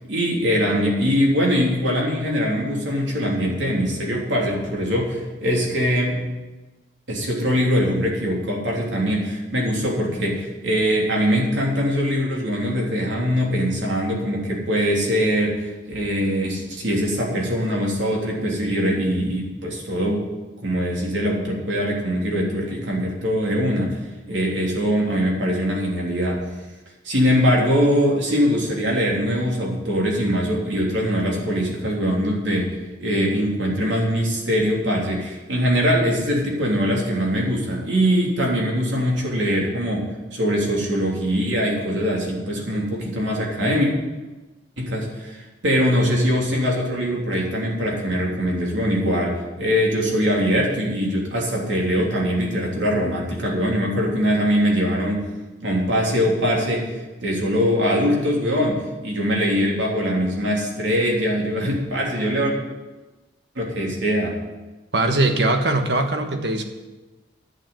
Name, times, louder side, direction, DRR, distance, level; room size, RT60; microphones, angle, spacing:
voice 1, 0.1-6.2 7.1-20.3 20.6-23.9 24.3-26.4 27.0-32.7 33.0-43.9 44.8-55.3 55.6-62.5 63.5-64.4, equal, 85° right, -2 dB, 3.3 m, -22 dB
voice 2, 64.9-66.6, right 2 dB, 65° right, 5 dB, 1.4 m, -21 dB
11.0 x 6.9 x 9.2 m, 1.2 s
head